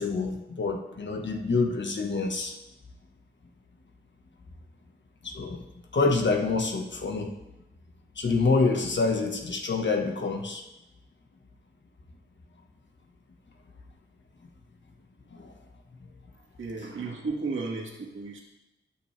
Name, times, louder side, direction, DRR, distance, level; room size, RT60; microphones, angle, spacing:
voice 1, 0.0-2.5 5.2-5.6 5.9-7.3 8.2-10.6 15.3-15.5, left 3 dB, 65° left, 3 dB, 1.4 m, -27 dB
voice 2, 16.6-18.4, right 3 dB, 80° right, 0 dB, 1.9 m, -34 dB
17.5 x 6.0 x 3.4 m, 0.94 s
wide cardioid pair, 90°, 20 cm